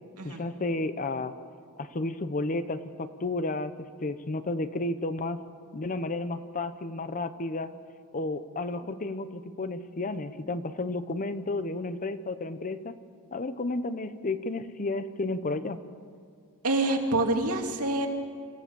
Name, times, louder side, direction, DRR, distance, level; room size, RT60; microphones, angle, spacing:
voice 1, 0.2-1.4 1.8-5.4 5.7-7.7 8.1-12.9 13.3-15.8, left 2 dB, 35° left, 12 dB, 0.8 m, -32 dB
voice 2, 16.6-18.1, right 2 dB, 85° right, 2 dB, 2.5 m, -26 dB
25.5 x 15.0 x 7.1 m, 2.2 s
head